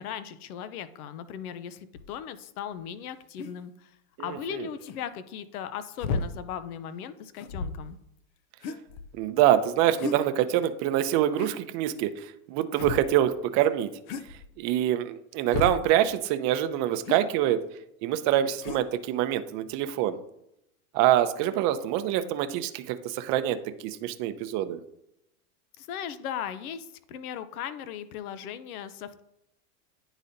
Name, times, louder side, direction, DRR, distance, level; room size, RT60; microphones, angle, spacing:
voice 1, 0.0-8.0 25.8-29.2, left 9 dB, 80° left, 13 dB, 0.7 m, -38 dB
sound 1, 2.0-2.1 3.4-3.5 4.8-5.0 6.0-6.3 7.4-8.0 8.6-9.2 10.0-10.2 11.4-11.6 12.7-13.1 14.1-14.5 15.5-15.8 17.0-17.2 18.6-18.8, left 4 dB, 35° left, 0.4 m, -33 dB
voice 2, 4.2-4.7 9.2-13.9 14.6-17.6 18.0-20.2 20.9-23.6 23.8-24.8, right 12 dB, 40° right, 10 dB, 0.6 m, -25 dB
9.8 x 4.0 x 2.6 m, 0.82 s
supercardioid pair, 120°, 43 cm